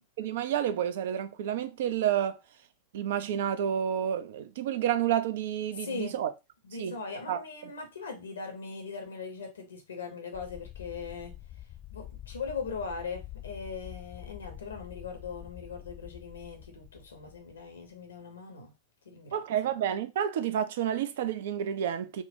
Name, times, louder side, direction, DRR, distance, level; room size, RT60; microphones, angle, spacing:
voice 1, 0.2-2.4 2.9-6.3 6.8-7.0 7.3-7.7 19.3-22.2, right 10 dB, 55° right, 0.4 m, -30 dB
voice 2, 5.8-6.2 6.6-11.4 11.9-18.7 19.1-19.4, left 5 dB, 70° left, 0.7 m, -40 dB
sound 1, 10.3-17.9, left 13 dB, 30° left, 0.6 m, -47 dB
3.6 x 2.1 x 2.6 m
figure-of-eight pair, 90°, 0 cm